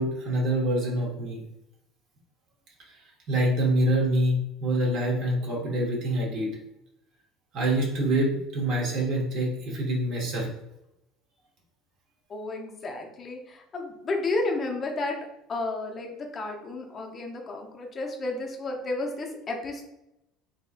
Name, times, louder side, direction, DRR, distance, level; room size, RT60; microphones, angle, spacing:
voice 1, 0.0-1.4 3.3-6.5 7.5-10.5, right 1 dB, 50° right, -2 dB, 1.0 m, -26 dB
voice 2, 12.3-15.2 15.5-19.8, left 2 dB, 30° left, 1 dB, 0.6 m, -32 dB
3.5 x 2.7 x 2.5 m, 0.87 s
cardioid pair, 140°, 0 cm